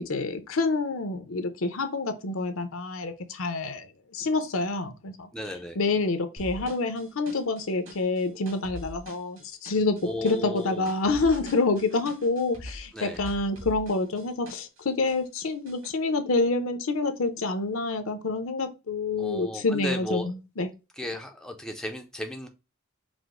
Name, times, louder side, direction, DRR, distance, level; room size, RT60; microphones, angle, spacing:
voice 1, 0.0-5.3 5.8-20.7, left 3 dB, 70° left, 0.7 m, -27 dB
voice 2, 5.3-5.8 10.0-10.9 12.9-13.2 19.2-20.3 21.0-22.5, left 1 dB, 5° left, 0.4 m, -35 dB
sound 1, 6.4-14.8 15.0-15.9, equal, 60° right, 1.9 m, -43 dB
4.9 x 2.0 x 3.6 m
head